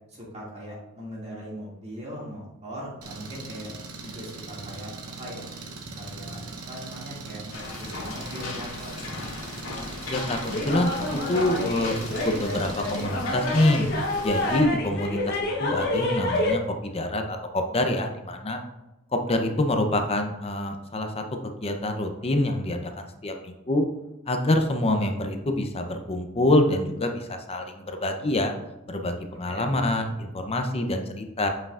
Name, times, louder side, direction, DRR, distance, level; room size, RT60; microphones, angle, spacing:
voice 1, 0.1-3.7 4.0-4.9 5.2-5.5 6.0-6.4 6.7-9.4 29.5-29.8, equal, 30° right, -5 dB, 2.2 m, -40 dB
Engine, 3.0-13.0, right 3 dB, 85° right, 0.9 m, -40 dB
sound 1, 7.5-14.6, left 3 dB, 70° left, 2.1 m, -37 dB
sound 2, 10.1-16.5, left 1 dB, 50° left, 1.1 m, -29 dB
voice 2, 10.1-10.9 11.3-12.0 12.2-13.9 14.2-18.6 19.1-23.9 24.3-28.5 28.9-31.5, left 1 dB, 25° left, 5 dB, 0.6 m, -26 dB
7.9 x 5.4 x 2.4 m, 0.96 s
head